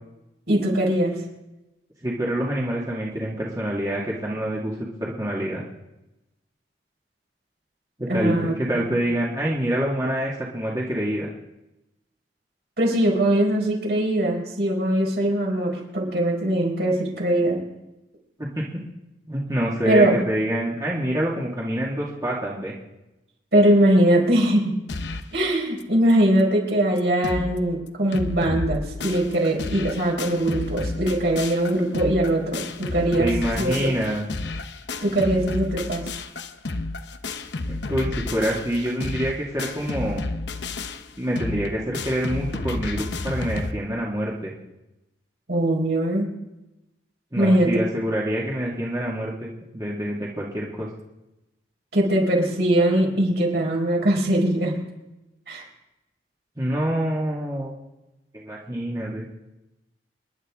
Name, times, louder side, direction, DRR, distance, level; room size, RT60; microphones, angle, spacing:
voice 1, 0.5-1.1 8.1-8.9 12.8-17.6 19.8-20.2 23.5-24.7 25.3-33.3 33.6-33.9 35.0-36.0 45.5-46.3 47.4-47.8 51.9-54.8 55.5-55.6, right 1 dB, 65° right, -1 dB, 4.8 m, -21 dB
voice 2, 2.0-5.6 8.0-11.3 18.4-18.8 19.3-22.7 33.2-34.3 37.7-40.2 41.2-44.5 47.3-49.5 49.7-50.9 56.6-57.7 58.4-59.3, right 1 dB, 20° right, -5 dB, 1.9 m, -26 dB
sound 1, 24.9-25.4 25.8-25.9 26.1-26.2 26.7-26.8 27.0-27.6 27.9-43.7, left 2 dB, 75° left, 0.9 m, -31 dB
28.0 x 11.0 x 3.6 m, 0.96 s
head